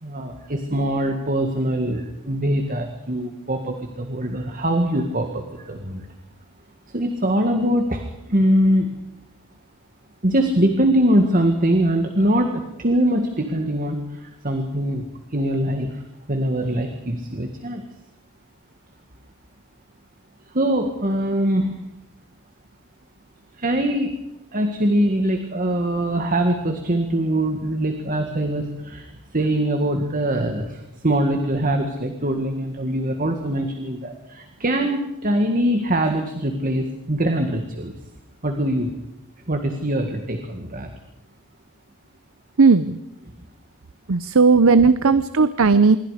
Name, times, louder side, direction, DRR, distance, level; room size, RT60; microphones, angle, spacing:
voice 1, 0.0-6.1 6.9-8.9 10.2-17.8 20.5-21.8 23.6-24.1 24.5-37.9 38.4-38.9 39.5-40.9 44.7-44.8, right 1 dB, 40° right, 5 dB, 1.9 m, -23 dB
voice 2, 42.6-43.0 44.1-46.0, right 4 dB, 65° right, 14 dB, 0.7 m, -15 dB
26.5 x 23.0 x 5.0 m, 0.90 s
head